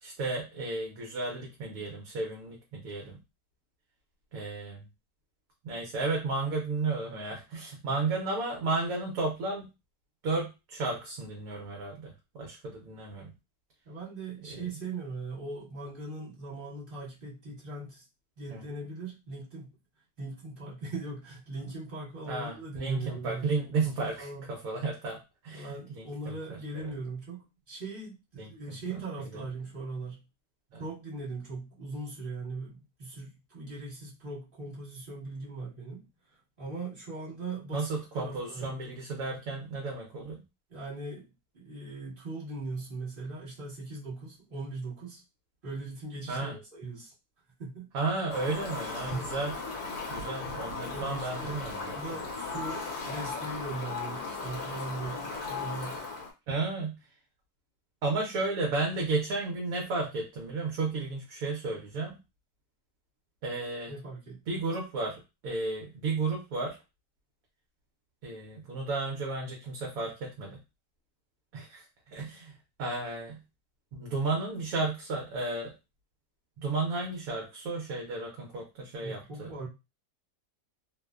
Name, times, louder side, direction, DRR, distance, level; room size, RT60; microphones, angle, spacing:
voice 1, 0.0-3.2 4.3-4.9 5.6-9.7 10.2-13.3 14.5-14.6 18.5-18.6 22.3-26.9 28.3-28.8 29.3-29.4 30.7-30.8 37.7-40.4 46.3-46.5 47.9-49.5 50.1-52.0 56.5-57.0 58.0-62.2 63.4-63.9 64.5-66.8 68.2-70.6 71.5-71.8 72.1-72.5 72.8-73.4 73.9-75.7 76.6-79.5, right 3 dB, 70° right, 0 dB, 0.9 m, -33 dB
voice 2, 13.8-18.0 18.4-19.7 20.2-23.5 23.8-23.9 24.2-24.5 25.5-30.2 30.8-36.0 36.6-37.9 38.1-38.8 40.7-41.3 41.5-45.2 45.6-47.1 47.6-47.9 49.1-49.3 50.9-56.0 63.9-64.6 79.0-79.7, right 3 dB, 35° right, -7 dB, 1.2 m, -40 dB
Fowl, 48.3-56.3, left 4 dB, 70° left, 1.2 m, -37 dB
2.8 x 2.0 x 2.3 m, 0.27 s
omnidirectional pair, 1.8 m